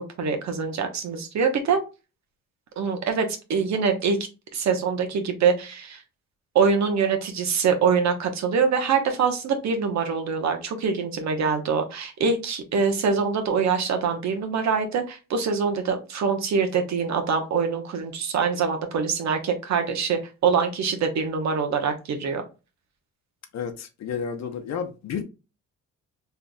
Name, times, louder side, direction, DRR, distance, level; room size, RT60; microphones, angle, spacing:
voice 1, 0.2-1.8 2.8-4.2 4.5-6.0 6.5-22.4, right 5 dB, 65° right, 1.0 m, -24 dB
voice 2, 23.5-25.2, left 7 dB, 60° left, 0.8 m, -31 dB
3.9 x 3.3 x 2.2 m
cardioid pair, 90°, 30 cm